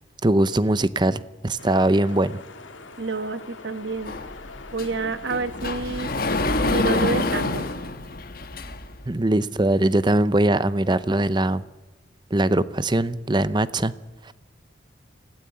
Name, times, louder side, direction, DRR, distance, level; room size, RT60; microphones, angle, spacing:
voice 1, 0.2-2.4 9.1-11.6 12.3-13.9 14.2-14.3, right 1 dB, 25° right, 16 dB, 0.7 m, -21 dB
sound 1, 1.6-7.7, left 3 dB, 85° left, 2.2 m, -43 dB
voice 2, 3.0-4.1 4.7-6.1 6.6-7.6, right 3 dB, 65° right, 12 dB, 1.3 m, -28 dB
Sliding door, 4.0-9.0, left 2 dB, 50° left, 1.4 m, -27 dB
25.5 x 16.5 x 8.7 m, 1.2 s
head